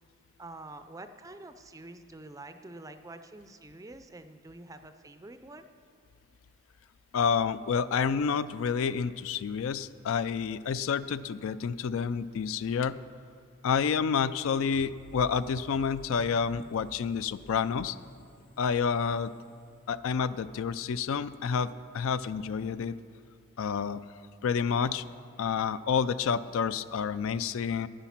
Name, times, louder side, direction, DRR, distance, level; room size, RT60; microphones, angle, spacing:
voice 1, 0.4-5.7, right 2 dB, 15° right, 9 dB, 0.4 m, -47 dB
voice 2, 7.1-13.0 13.6-18.0 18.6-19.3 19.9-22.9 23.6-24.0 24.4-25.0 25.4-27.9, left 6 dB, 65° left, 15 dB, 0.3 m, -29 dB
sound 1, 14.7-20.4, equal, 40° left, 0.9 m, -52 dB
11.5 x 9.8 x 5.8 m, 2.1 s
head